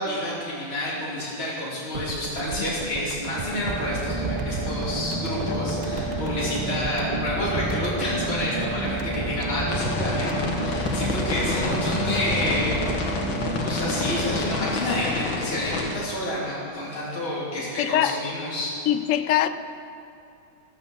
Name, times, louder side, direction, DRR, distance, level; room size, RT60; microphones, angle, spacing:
voice 1, 0.0-12.8 13.5-18.8, left 1 dB, 30° left, -7 dB, 3.2 m, -29 dB
sound 1, 1.9-14.4, right 4 dB, 70° right, 0.4 m, -35 dB
sound 2, 3.2-15.1, right 1 dB, 25° right, 0.7 m, -30 dB
voice 2, 5.5-5.9 17.8-18.2 18.9-19.5, left 11 dB, 75° left, 11 dB, 0.7 m, -23 dB
sound 3, 9.7-16.0, left 4 dB, 90° left, 2.3 m, -29 dB
14.5 x 14.0 x 7.1 m, 2.6 s
omnidirectional pair, 2.1 m